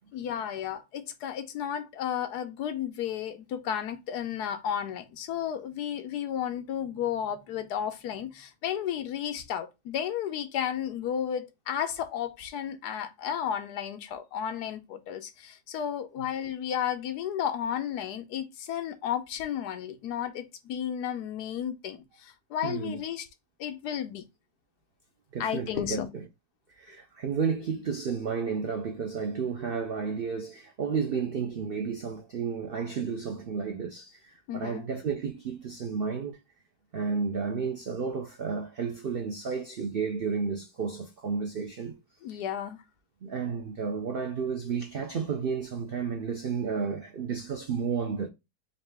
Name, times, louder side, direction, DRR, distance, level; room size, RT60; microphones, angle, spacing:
voice 1, 0.1-23.3 23.6-24.2 25.4-26.1 34.5-34.8 42.2-42.8, left 9 dB, 75° left, 1.2 m, -33 dB
voice 2, 22.6-23.0 25.3-26.2 26.7-36.4 36.9-41.9 43.2-48.3, right 5 dB, 85° right, 0.5 m, -32 dB
4.0 x 2.7 x 3.3 m
omnidirectional pair, 1.8 m